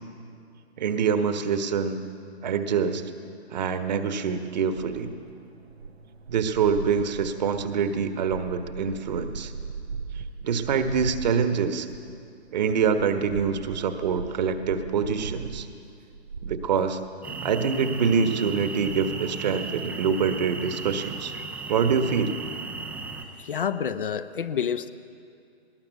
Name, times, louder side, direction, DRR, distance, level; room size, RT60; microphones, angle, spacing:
voice 1, 0.8-2.0 2.4-3.1 3.5-5.1 6.3-9.5 10.4-11.9 12.5-15.7 16.4-17.0 17.4-21.3 21.7-22.4, right 6 dB, 40° right, 8 dB, 1.5 m, -25 dB
sound 1, 4.2-11.6 11.9-12.3 12.6-17.2 17.6-17.7 18.4-18.5 18.8-19.4 19.9-20.5, right 4 dB, 70° right, 1.0 m, -39 dB
sound 2, 17.2-23.2, right 4 dB, 5° right, 0.6 m, -36 dB
voice 2, 23.4-24.9, left 8 dB, 50° left, 10 dB, 1.0 m, -28 dB
19.5 x 18.5 x 8.1 m, 2.5 s
figure-of-eight pair, 130°, 33 cm